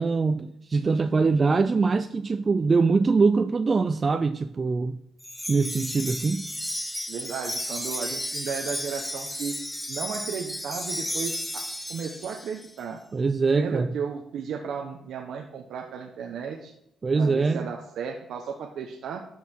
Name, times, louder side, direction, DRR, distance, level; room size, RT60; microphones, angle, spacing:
voice 1, 0.0-5.0 5.5-6.5 13.1-13.9 17.0-17.6, right 4 dB, 30° right, 0.4 m, -23 dB
Wind chime, 5.2-12.7, left 1 dB, 5° left, 0.7 m, -33 dB
voice 2, 7.1-9.5 9.9-13.0 13.6-16.7 17.1-19.3, right 6 dB, 70° right, 1.1 m, -34 dB
12.0 x 5.8 x 4.5 m
cardioid pair, 110°, 0 cm